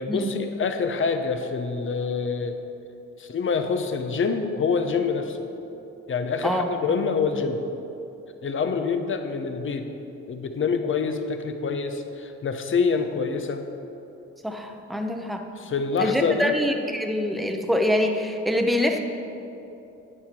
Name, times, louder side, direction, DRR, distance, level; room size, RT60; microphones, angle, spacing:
voice 1, 0.0-2.6 3.2-5.5 6.1-7.6 8.4-9.9 10.3-13.6 15.6-16.6, left 5 dB, 40° left, 7 dB, 0.9 m, -26 dB
voice 2, 6.4-6.7 14.4-15.4 16.0-19.0, left 1 dB, ahead, 3 dB, 0.8 m, -25 dB
11.0 x 9.0 x 4.4 m, 2.9 s
cardioid pair, 90°, 30 cm